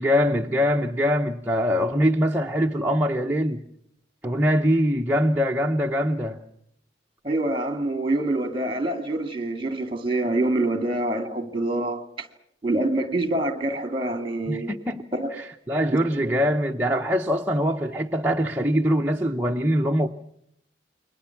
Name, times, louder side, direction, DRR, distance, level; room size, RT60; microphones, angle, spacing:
voice 1, 0.0-3.6 4.2-6.4 14.5-15.0 15.4-20.1, equal, 10° right, 0.9 m, -23 dB
voice 2, 7.2-12.3 12.6-14.8 15.1-15.3 16.2-16.4, right 2 dB, 25° right, 2.2 m, -26 dB
29.0 x 22.5 x 5.9 m
head